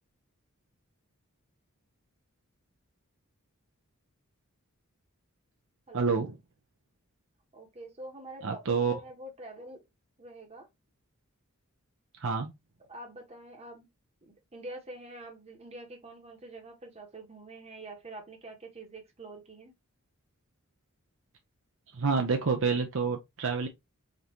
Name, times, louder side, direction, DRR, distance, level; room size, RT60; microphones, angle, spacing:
voice 1, 5.9-6.4 8.4-9.0 12.2-12.5 21.9-23.7, right 5 dB, 60° right, 0.6 m, -28 dB
voice 2, 7.5-9.8 10.2-10.7 12.9-13.9 14.2-19.7, right 1 dB, 30° right, 1.2 m, -46 dB
5.2 x 2.6 x 2.9 m
head